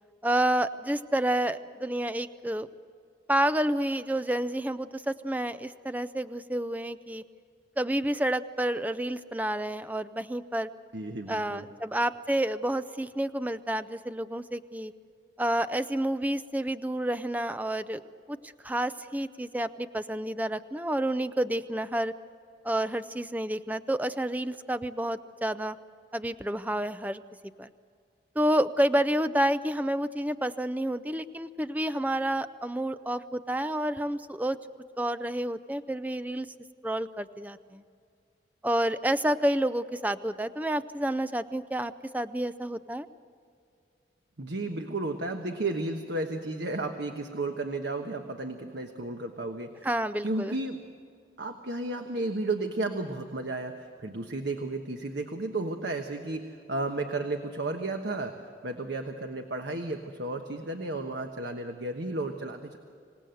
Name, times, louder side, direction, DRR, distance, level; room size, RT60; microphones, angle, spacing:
voice 1, 0.2-2.7 3.3-7.2 7.8-10.7 11.3-14.9 15.4-18.0 18.3-22.1 22.6-25.8 26.1-27.2 27.6-27.7 28.4-34.6 35.0-36.5 36.8-37.8 38.6-43.1 49.8-50.5, right 1 dB, 10° right, 12 dB, 0.5 m, -29 dB
voice 2, 10.9-11.7 44.4-49.9 50.2-50.8 51.4-58.4 58.6-62.8, right 2 dB, 75° right, 5 dB, 1.2 m, -33 dB
26.5 x 17.5 x 7.8 m, 2.3 s
head